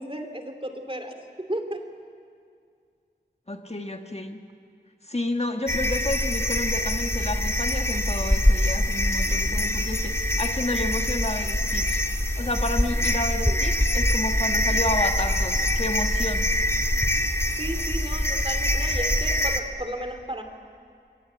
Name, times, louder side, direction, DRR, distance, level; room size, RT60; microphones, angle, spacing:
voice 1, 0.0-1.9 13.4-13.6 17.6-20.4, right 1 dB, 30° right, 5 dB, 3.0 m, -34 dB
voice 2, 3.5-4.4 5.0-12.0 12.4-16.5, left 1 dB, 35° left, 4 dB, 1.5 m, -31 dB
sound 1, 5.7-19.6, left 1 dB, 15° left, 1.8 m, -24 dB
27.5 x 23.0 x 8.3 m, 2.3 s
wide cardioid pair, 45°, 19 cm